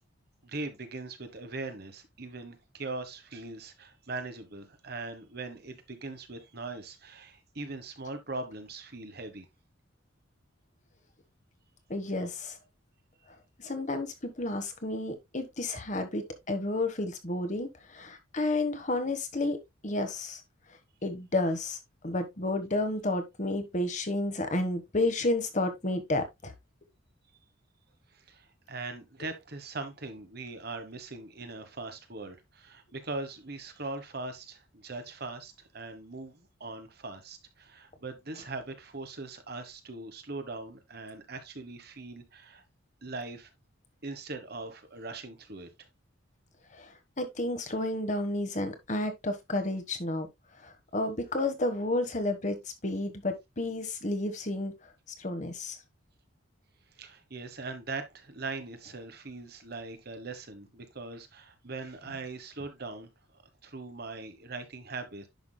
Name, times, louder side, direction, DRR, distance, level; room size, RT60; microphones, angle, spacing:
voice 1, 0.4-9.5 28.1-42.6 43.0-43.5 44.0-45.7 57.0-63.1 63.6-65.3, right 3 dB, 50° right, 1.3 m, -41 dB
voice 2, 11.9-12.6 13.6-19.6 19.8-20.4 21.0-21.8 22.0-26.5 46.7-50.3 50.6-54.7 55.2-55.8, left 2 dB, 35° left, 1.3 m, -31 dB
10.5 x 6.0 x 2.2 m
head